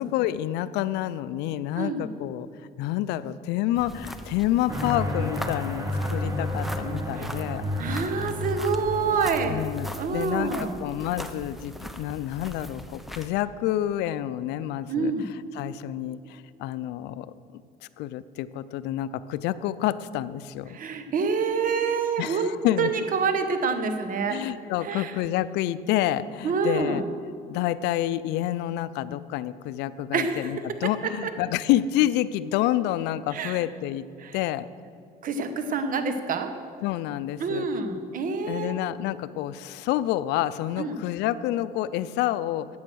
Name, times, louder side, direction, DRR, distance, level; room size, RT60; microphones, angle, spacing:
voice 1, 0.0-2.5 2.8-7.7 9.5-17.3 17.5-17.6 18.0-20.8 22.2-22.9 24.3-27.0 27.5-34.1 34.3-34.7 36.8-37.7 38.4-42.8, left 13 dB, 90° left, 16 dB, 0.5 m, -28 dB
voice 2, 1.8-2.1 7.2-7.3 7.8-9.6 9.9-10.8 14.9-15.2 20.7-22.5 22.8-24.4 24.8-25.1 26.4-27.1 30.1-30.6 31.2-31.3 33.3-33.6 34.2-34.3 35.2-36.5 37.4-38.8 40.8-41.0, right 5 dB, 55° right, 8 dB, 1.3 m, -27 dB
sound 1, 3.7-13.3, equal, ahead, 0.8 m, -41 dB
sound 2, 4.7-10.0, left 1 dB, 20° right, 1.9 m, -31 dB
14.5 x 9.4 x 6.3 m, 2.4 s
cardioid pair, 110°, 17 cm